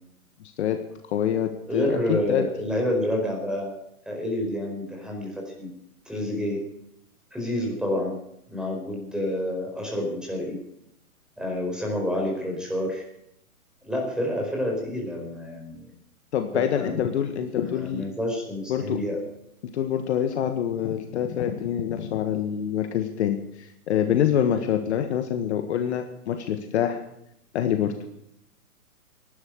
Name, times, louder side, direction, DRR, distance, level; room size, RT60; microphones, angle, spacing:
voice 1, 1.1-2.5 16.3-18.1 18.7-19.0 19.7-27.0 27.5-28.0, left 9 dB, 50° left, 7 dB, 1.7 m, -26 dB
voice 2, 1.7-3.7 4.1-5.7 6.0-6.6 7.3-8.2 8.5-10.6 11.4-13.0 13.8-15.9 16.5-17.0 17.5-19.2, left 1 dB, ahead, 0 dB, 4.6 m, -28 dB
18.0 x 11.5 x 6.4 m, 0.78 s
hypercardioid pair, 135°, 45 cm